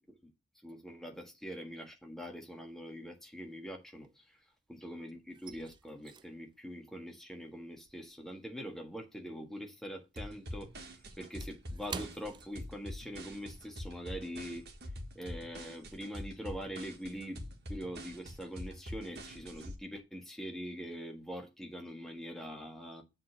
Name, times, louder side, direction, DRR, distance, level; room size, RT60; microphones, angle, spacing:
voice 1, 0.6-14.7 15.1-23.0, equal, ahead, 1.6 m, -44 dB
sound 1, 1.9-2.4 2.7-4.7 5.0-9.7 9.9-13.3 13.6-13.8 14.2-14.5, right 5 dB, 25° right, 0.3 m, -50 dB
sound 2, 10.2-19.8, equal, 55° right, 1.8 m, -45 dB
7.4 x 3.9 x 6.6 m
head